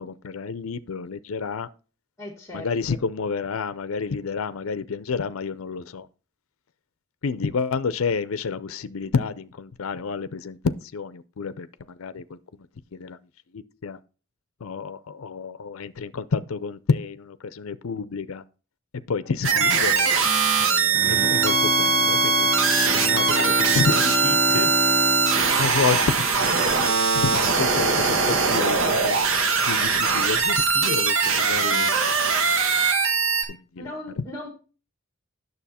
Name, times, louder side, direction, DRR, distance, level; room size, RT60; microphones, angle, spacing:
voice 1, 0.0-1.7 2.5-6.1 7.2-12.4 12.9-13.2 13.5-14.0 14.6-18.4 19.1-20.2 20.6-22.5 22.9-24.7 25.6-26.3 26.6-29.2 29.7-31.9 33.5-34.2, left 5 dB, 85° left, 0.5 m, -29 dB
voice 2, 2.2-3.0 19.5-19.9 33.8-34.5, left 1 dB, 15° left, 1.8 m, -38 dB
sound 1, 19.4-33.4, right 5 dB, 75° right, 1.4 m, -21 dB
Bowed string instrument, 20.8-27.1 27.5-27.6, left 2 dB, 5° right, 1.2 m, -30 dB
9.3 x 6.7 x 4.2 m
head